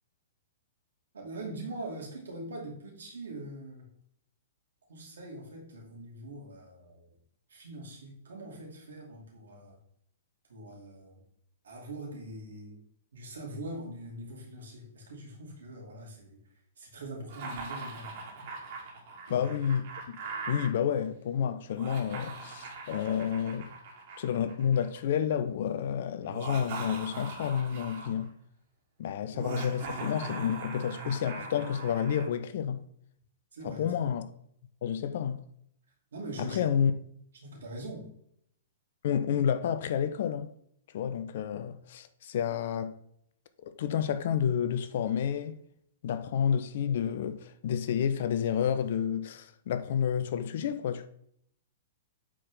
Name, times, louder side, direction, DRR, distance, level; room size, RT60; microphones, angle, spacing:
voice 1, 1.1-3.9 4.9-7.1 7.5-9.8 10.5-11.2 11.6-12.8 13.1-16.4 16.8-18.1 19.3-19.5 29.3-29.4 33.5-33.8 36.1-36.6 37.4-38.1, right 1 dB, 65° right, 2.6 m, -42 dB
Laughter, 17.3-20.7 21.7-25.0 26.2-28.2 29.3-32.3, right 3 dB, 50° right, 2.3 m, -41 dB
voice 2, 19.3-20.2 20.5-23.7 24.2-28.3 29.0-32.8 33.6-34.3 34.8-35.4 36.6-36.9 39.0-40.5 40.9-42.9 43.8-45.6 46.0-51.1, left 8 dB, 55° left, 0.6 m, -30 dB
9.1 x 4.4 x 3.8 m
figure-of-eight pair, 110°, 0 cm